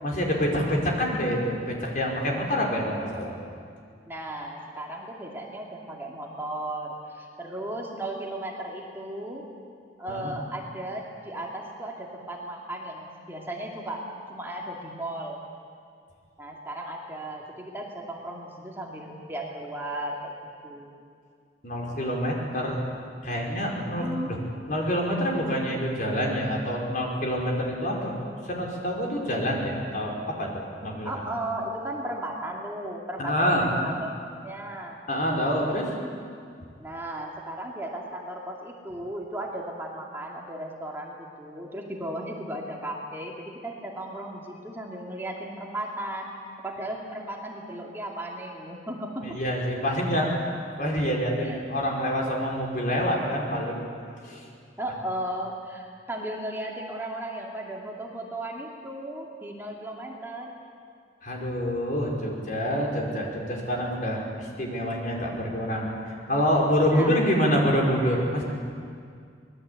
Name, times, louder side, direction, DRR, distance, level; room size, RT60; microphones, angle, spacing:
voice 1, 0.0-3.3 10.1-10.3 21.6-22.8 23.2-24.4 24.7-28.1 28.4-31.2 33.2-33.7 35.1-35.9 49.2-50.5 50.8-53.9 54.2-54.5 61.2-68.4, equal, 45° left, -1 dB, 5.0 m, -27 dB
voice 2, 4.1-9.5 10.0-15.4 16.4-20.4 20.6-21.0 23.8-24.3 31.0-34.1 34.4-35.0 36.8-46.4 46.6-49.4 51.4-51.6 54.8-60.5 66.9-67.1, right 1 dB, 15° right, -2 dB, 2.4 m, -35 dB
25.0 x 20.0 x 8.3 m, 2.2 s
head